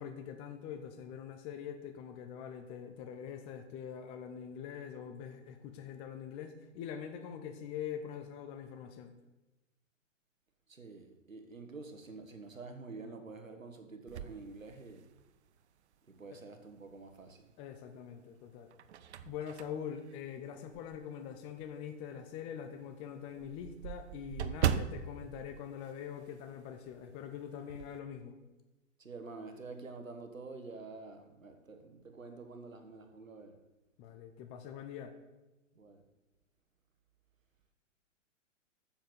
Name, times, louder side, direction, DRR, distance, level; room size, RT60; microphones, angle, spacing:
voice 1, 0.0-9.1 16.3-16.4 17.6-18.7 19.2-28.4 34.0-35.1, left 8 dB, 15° left, 0.4 m, -44 dB
voice 2, 10.7-15.0 16.2-17.5 29.0-33.5 35.8-36.0, right 3 dB, 85° right, 1.6 m, -48 dB
sound 1, 14.1-15.4 15.9-16.0 17.5-18.0 18.5-21.1 21.6-21.7 22.1-22.2 22.5-22.6 22.8-26.6 26.8-27.1 27.4-28.0, right 9 dB, 60° right, 0.7 m, -39 dB
7.3 x 7.0 x 8.0 m
figure-of-eight pair, 115°, 39 cm